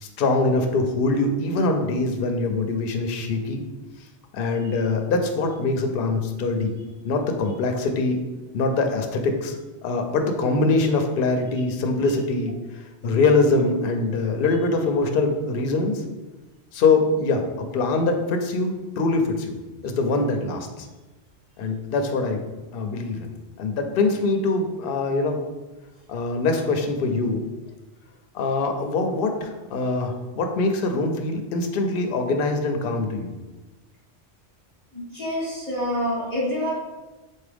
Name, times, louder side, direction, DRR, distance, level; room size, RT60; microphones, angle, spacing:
voice 1, 0.0-3.6 4.3-6.7 7.0-8.2 8.5-9.6 9.8-16.0 16.7-19.6 19.8-20.9 21.6-22.4 22.7-23.3 23.6-25.4 26.1-27.4 28.3-33.4, left 3 dB, 60° left, 5 dB, 0.7 m, -23 dB
voice 2, 34.9-36.7, equal, 35° right, -10 dB, 1.7 m, -27 dB
4.1 x 3.6 x 3.4 m, 1.2 s
omnidirectional pair, 1.2 m